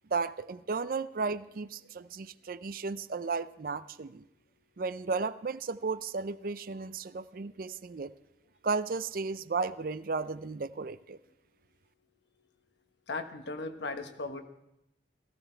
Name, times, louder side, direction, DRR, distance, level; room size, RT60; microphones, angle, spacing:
voice 1, 0.1-4.2 4.8-8.1 8.6-11.2, right 4 dB, 50° right, 14 dB, 0.5 m, -34 dB
voice 2, 13.1-14.4, left 3 dB, 80° left, 7 dB, 1.2 m, -37 dB
17.5 x 14.0 x 4.5 m, 0.86 s
head